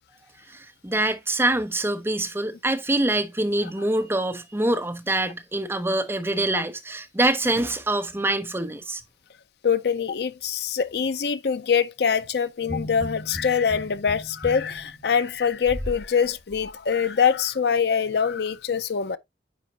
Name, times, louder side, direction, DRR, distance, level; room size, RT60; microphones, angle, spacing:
voice 1, 0.5-9.0, right 1 dB, 15° right, 0.7 m, -25 dB
voice 2, 9.6-19.2, left 6 dB, 60° left, 0.5 m, -24 dB
sound 1, 12.6-16.1 16.5-16.7, equal, 10° left, 1.7 m, -36 dB
9.4 x 4.5 x 2.8 m
head